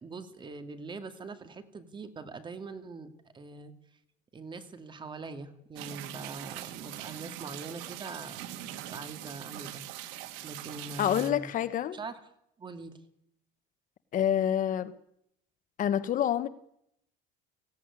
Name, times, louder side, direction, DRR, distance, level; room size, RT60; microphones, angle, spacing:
voice 1, 0.0-3.1 3.3-3.7 4.3-9.8 10.4-11.5 11.9-12.2 12.6-13.0, right 3 dB, 25° right, 9 dB, 2.2 m, -43 dB
sound 1, 5.8-11.3, right 13 dB, 85° right, 1.9 m, -42 dB
voice 2, 11.0-12.0 14.1-14.9 15.8-16.5, left 10 dB, 45° left, 13 dB, 1.2 m, -27 dB
17.5 x 16.5 x 9.7 m, 0.74 s
cardioid pair, 135°, 19 cm